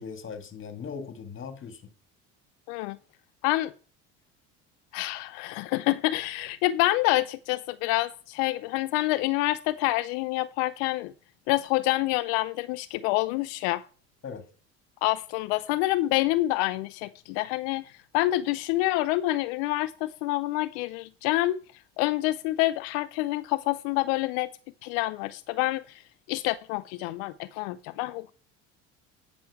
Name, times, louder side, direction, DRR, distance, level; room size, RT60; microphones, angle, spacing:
voice 1, 0.0-1.8 14.2-14.4, left 6 dB, 35° left, 1.8 m, -39 dB
voice 2, 4.9-11.1 11.5-13.8 15.0-17.8 18.1-21.6 22.0-24.5 24.8-26.0 26.3-28.3, left 18 dB, 80° left, 0.5 m, -27 dB
9.4 x 5.9 x 4.7 m
supercardioid pair, 85°, 34 cm